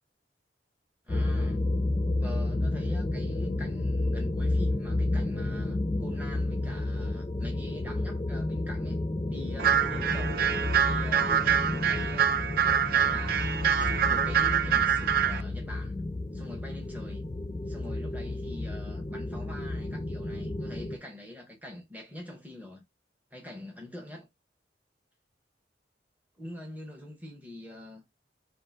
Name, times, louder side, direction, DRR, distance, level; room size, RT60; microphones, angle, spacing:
voice 1, 1.0-1.6 2.2-9.0 9.3-10.5 10.7-12.4 12.9-15.9 16.3-17.2 17.7-22.8 23.3-24.3 26.4-28.0, left 1 dB, 10° right, 0.8 m, -44 dB
sound 1, 1.1-21.0, left 2 dB, 20° left, 0.5 m, -31 dB
sound 2, 9.6-15.4, right 8 dB, 50° right, 0.4 m, -25 dB
3.7 x 2.8 x 3.8 m
head